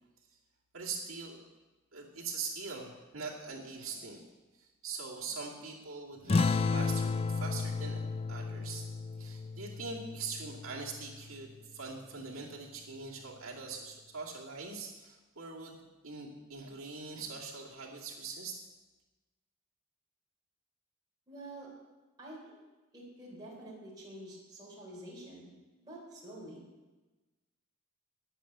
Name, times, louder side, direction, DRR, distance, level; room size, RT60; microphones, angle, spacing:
voice 1, 0.7-1.4 1.9-4.3 4.6-8.0 8.3-8.9 9.2-15.8 16.0-18.6, right 4 dB, 80° right, -5 dB, 2.4 m, -42 dB
sound 1, 6.3-11.3, left 4 dB, 30° left, 0.3 m, -33 dB
voice 2, 21.3-21.7 22.2-22.6 22.9-25.5 25.8-26.6, right 1 dB, 20° right, -7 dB, 3.7 m, -48 dB
10.0 x 9.1 x 8.2 m, 1.2 s
head